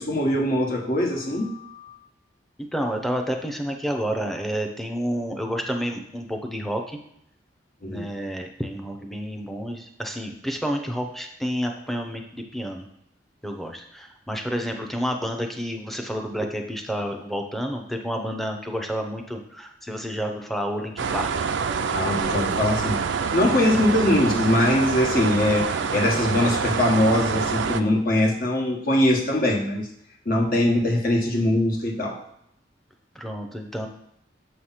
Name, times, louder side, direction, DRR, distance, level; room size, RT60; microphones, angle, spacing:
voice 1, 0.0-2.0 7.8-8.1 21.9-23.0 23.3-29.9 30.2-32.2, left 1 dB, 55° left, 0 dB, 1.3 m, -22 dB
voice 2, 2.6-7.0 7.9-12.9 13.4-21.5 23.7-23.9 33.1-33.9, equal, ahead, 3 dB, 0.7 m, -30 dB
sound 1, 21.0-27.8, right 5 dB, 85° right, 0.4 m, -26 dB
7.0 x 3.2 x 5.7 m, 0.75 s
head